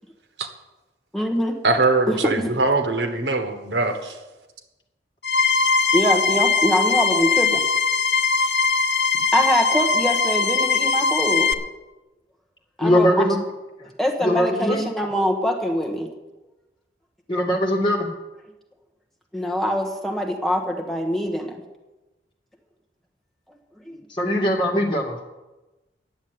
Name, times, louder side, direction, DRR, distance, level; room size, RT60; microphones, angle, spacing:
voice 1, 1.1-1.6 2.1-2.5 5.9-7.6 9.3-11.5 12.8-13.3 14.0-16.1 19.3-21.6 23.5-23.6 23.8-23.9, equal, ahead, 1 dB, 1.2 m, -23 dB
voice 2, 1.6-4.0, right 3 dB, 80° right, 6 dB, 1.4 m, -21 dB
sound 1, 5.2-11.5, left 4 dB, 65° left, 0.7 m, -20 dB
voice 3, 12.8-13.4 13.8-13.9 14.2-14.8 17.3-18.1 24.1-25.2, equal, 25° left, -1 dB, 2.2 m, -21 dB
11.0 x 7.3 x 9.4 m, 1.1 s
head